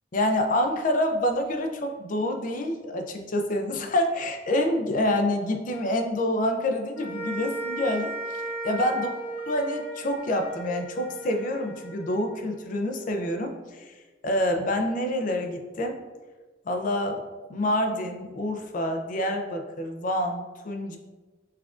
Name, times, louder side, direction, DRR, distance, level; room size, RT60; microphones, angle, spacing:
voice 1, 0.1-9.1 9.5-14.0 14.2-16.0 16.7-17.2 17.5-21.0, left 1 dB, 45° left, 4 dB, 0.4 m, -27 dB
sound 1, 6.9-13.4, right 2 dB, 85° left, 1.0 m, -36 dB
5.6 x 2.4 x 2.4 m, 1.3 s
head